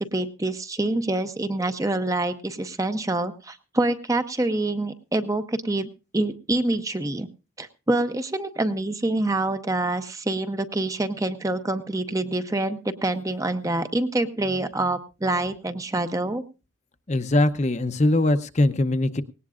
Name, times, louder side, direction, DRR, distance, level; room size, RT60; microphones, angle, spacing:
voice 1, 0.0-5.9 6.1-7.3 7.6-16.4, right 2 dB, 15° right, 9 dB, 0.7 m, -26 dB
voice 2, 17.1-19.2, left 1 dB, 35° left, 10 dB, 0.7 m, -21 dB
18.5 x 18.0 x 2.4 m, 0.31 s
head